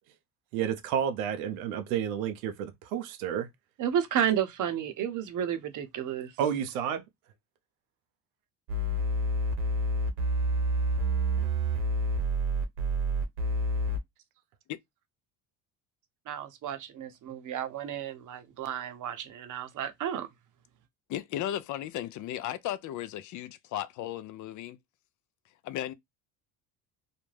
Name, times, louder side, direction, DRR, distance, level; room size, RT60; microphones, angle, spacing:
voice 1, 0.5-3.5 6.4-7.0, right 9 dB, 85° right, 0.6 m, -30 dB
voice 2, 3.8-6.3 16.3-20.3, right 9 dB, 45° right, 0.7 m, -32 dB
sound 1, 8.7-14.0, right 1 dB, 65° right, 1.0 m, -28 dB
voice 3, 21.1-24.8 25.6-25.9, left 12 dB, 45° left, 0.4 m, -35 dB
2.4 x 2.1 x 3.1 m
supercardioid pair, 80°, 42 cm